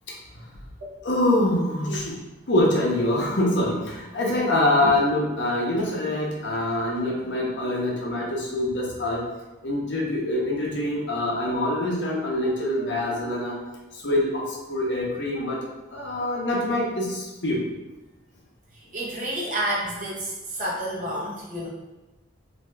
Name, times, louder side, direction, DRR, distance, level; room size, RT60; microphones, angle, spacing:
voice 1, 1.0-2.1 2.5-9.2 9.6-13.5 14.0-14.4 14.7-15.6 15.9-17.6, left 1 dB, 60° left, -3 dB, 0.7 m, -24 dB
voice 2, 18.9-21.7, right 1 dB, 40° right, -4 dB, 0.7 m, -29 dB
2.6 x 2.3 x 3.2 m, 1.1 s
head